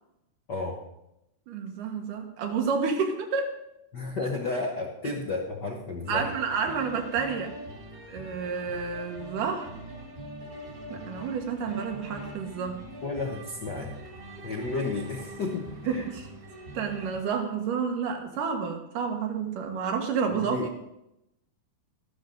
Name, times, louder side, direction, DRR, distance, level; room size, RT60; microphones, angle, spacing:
voice 1, 0.5-0.8 3.9-6.3 13.0-14.0 14.4-16.1 20.3-20.7, left 3 dB, 70° left, 1 dB, 0.9 m, -32 dB
voice 2, 1.5-3.5 6.1-7.5 8.1-9.7 10.9-12.8 15.9-16.3 16.7-20.8, right 5 dB, 85° right, 3 dB, 3.0 m, -30 dB
sound 1, 6.0-17.2, right 1 dB, 30° right, 1.3 m, -43 dB
13.0 x 12.0 x 3.9 m, 0.87 s
omnidirectional pair, 3.6 m